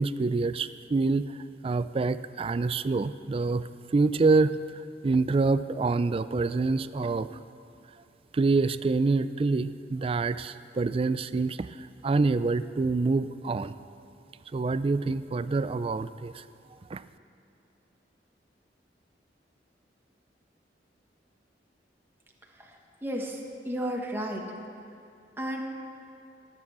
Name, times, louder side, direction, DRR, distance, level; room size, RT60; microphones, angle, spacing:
voice 1, 0.0-1.4 1.6-4.6 5.0-7.4 8.3-13.7 14.5-16.4 16.9-17.0, right 3 dB, 30° right, 14 dB, 0.3 m, -26 dB
voice 2, 22.6-24.6 25.4-25.6, equal, 15° right, 0 dB, 1.2 m, -33 dB
17.0 x 7.5 x 7.2 m, 2.6 s
head